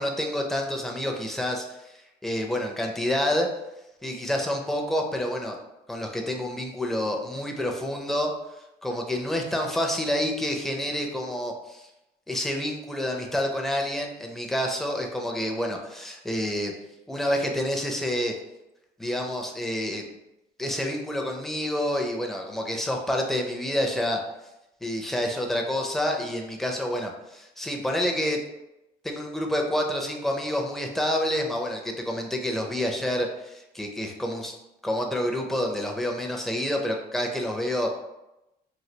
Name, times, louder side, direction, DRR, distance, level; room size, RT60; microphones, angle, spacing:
voice 1, 0.0-1.9 2.2-3.5 4.0-5.6 5.9-8.3 8.8-11.9 12.3-16.7 17.1-18.3 19.0-20.1 20.6-24.2 24.8-28.4 29.0-34.6 34.8-37.9, left 1 dB, ahead, 0 dB, 0.5 m, -28 dB
3.2 x 2.3 x 2.8 m, 0.93 s
cardioid pair, 110°, 17 cm